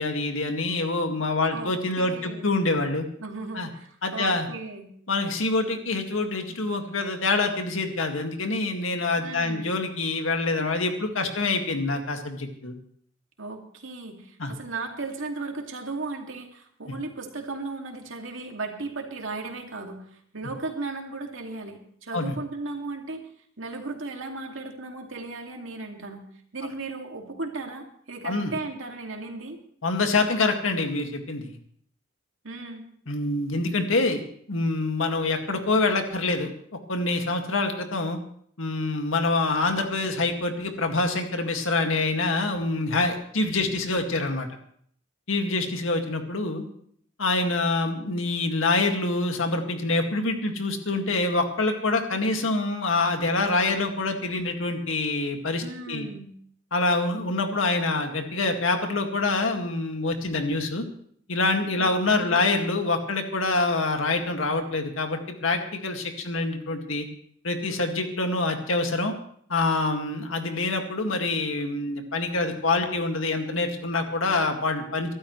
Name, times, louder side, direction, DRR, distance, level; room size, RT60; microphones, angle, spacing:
voice 1, 0.0-3.0 3.5-3.7 4.0-4.5 5.1-12.8 14.4-14.5 22.1-22.4 28.2-28.5 29.8-31.5 33.1-34.2 34.5-36.5 36.9-38.2 38.6-44.5 45.3-46.7 47.2-56.1 56.7-60.8 61.3-67.1 67.4-69.1 69.5-75.1, left 3 dB, 85° left, 4 dB, 2.0 m, -26 dB
voice 2, 1.5-2.5 3.2-4.9 9.2-9.8 13.4-20.0 20.3-23.2 23.6-26.2 26.5-29.6 32.4-32.8 55.6-56.3 61.8-62.6, right 3 dB, 80° right, 2 dB, 2.4 m, -36 dB
24.0 x 12.5 x 3.2 m, 0.62 s
head